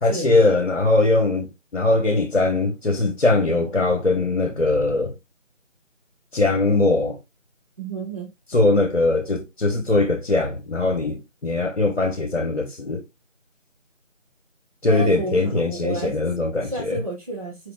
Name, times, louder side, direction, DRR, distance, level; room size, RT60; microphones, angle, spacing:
voice 1, 0.0-5.1 6.3-7.2 8.5-13.0 14.8-17.0, left 2 dB, 55° left, 1.1 m, -21 dB
voice 2, 7.8-8.3 14.9-16.2 16.6-17.7, right 2 dB, 30° right, 1.0 m, -31 dB
4.7 x 4.2 x 2.4 m
figure-of-eight pair, 170°, 38 cm